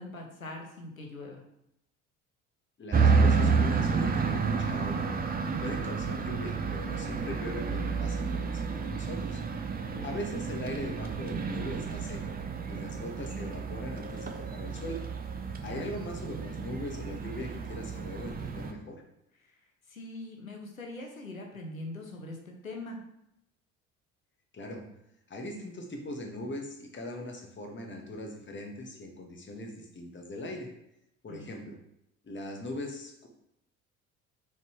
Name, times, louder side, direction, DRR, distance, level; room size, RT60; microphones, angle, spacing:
voice 1, 0.0-1.4 9.9-10.3 15.7-15.9 19.4-19.5 19.9-23.0 31.3-31.6, left 2 dB, 90° left, 2 dB, 0.9 m, -42 dB
voice 2, 2.8-5.0 5.5-9.4 10.0-12.3 12.7-15.0 15.6-19.0 24.5-24.8 25.3-30.7 31.2-31.8 32.2-33.3, left 1 dB, 30° left, 2 dB, 1.6 m, -40 dB
sound 1, 2.9-18.7, right 5 dB, 20° right, 0.8 m, -30 dB
6.8 x 4.5 x 3.2 m, 0.80 s
figure-of-eight pair, 55°, 40 cm